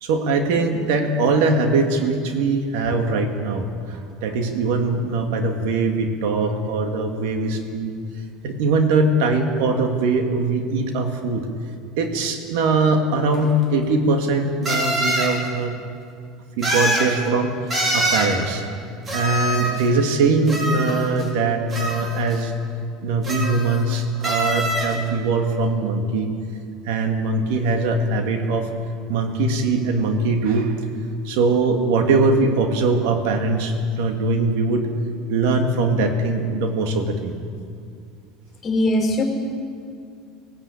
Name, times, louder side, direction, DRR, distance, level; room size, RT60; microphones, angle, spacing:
voice 1, 0.0-7.9 8.4-11.5 12.0-15.7 16.6-17.6 17.9-18.6 19.1-22.5 23.0-26.3 26.9-28.7 29.1-30.7 31.2-34.8 35.3-37.3, right 3 dB, 75° right, 4 dB, 2.4 m, -21 dB
sound 1, 13.3-13.4 14.6-15.3 16.6-17.1 17.7-18.3 19.1-19.9 20.5-21.3 21.7-22.3 23.2-23.9 24.2-24.9, equal, 25° right, 5.2 m, -24 dB
voice 2, 38.6-39.2, left 1 dB, 30° left, 3 dB, 4.4 m, -20 dB
17.5 x 17.0 x 8.6 m, 2.3 s
supercardioid pair, 115°, 0 cm